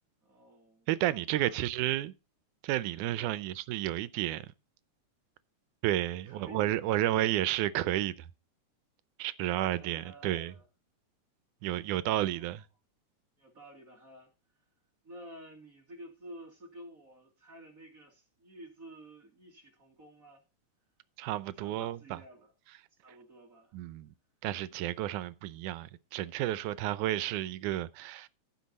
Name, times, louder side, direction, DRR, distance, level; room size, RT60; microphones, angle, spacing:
voice 1, 0.2-1.6 3.1-3.4 6.2-7.1 9.5-10.7 12.1-12.6 13.4-14.3 15.0-20.4 21.6-22.5 23.0-23.8, right 1 dB, 30° right, 2.1 m, -52 dB
voice 2, 0.9-2.1 2.6-4.5 5.8-8.1 9.2-10.5 11.6-12.6 21.2-22.2 23.7-24.1 24.4-28.3, right 14 dB, 85° right, 2.1 m, -31 dB
15.0 x 6.0 x 4.1 m
omnidirectional pair, 3.5 m